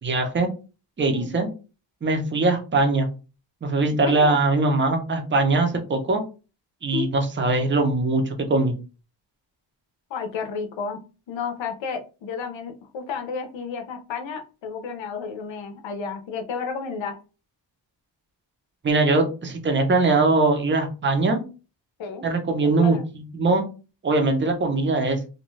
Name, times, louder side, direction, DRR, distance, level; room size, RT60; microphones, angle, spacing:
voice 1, 0.0-0.5 1.0-1.5 2.0-3.1 3.6-6.2 6.8-8.7 18.8-21.4 22.2-23.0 23.3-23.6 24.0-25.2, right 3 dB, 25° right, 5 dB, 0.5 m, -21 dB
voice 2, 4.0-4.4 6.9-7.1 10.1-17.2 22.0-22.3 22.6-23.0, left 5 dB, 75° left, 6 dB, 0.6 m, -32 dB
2.6 x 2.2 x 3.0 m, 0.32 s
wide cardioid pair, 165°, 46 cm